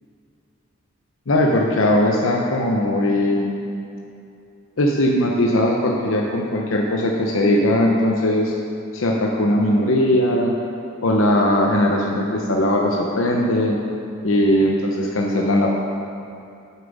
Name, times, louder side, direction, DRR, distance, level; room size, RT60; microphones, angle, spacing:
voice 1, 1.3-3.5 4.8-8.5 8.9-10.6 11.0-13.8 14.2-15.7, left 1 dB, 70° left, 0 dB, 0.7 m, -19 dB
7.2 x 7.0 x 5.2 m, 2.6 s
head